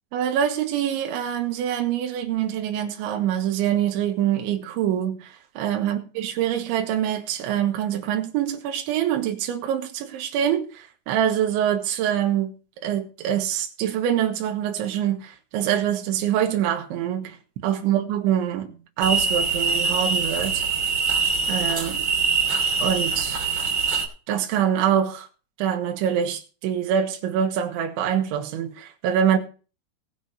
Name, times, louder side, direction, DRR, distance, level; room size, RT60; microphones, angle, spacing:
voice 1, 0.1-12.5 12.8-17.4 17.6-20.7 21.5-22.0 22.8-23.4 24.3-25.3 25.6-29.4, right 9 dB, 80° right, 3.7 m, -25 dB
sound 1, 19.0-24.1, right 4 dB, 35° right, 2.6 m, -24 dB
19.5 x 6.6 x 4.3 m
omnidirectional pair, 5.3 m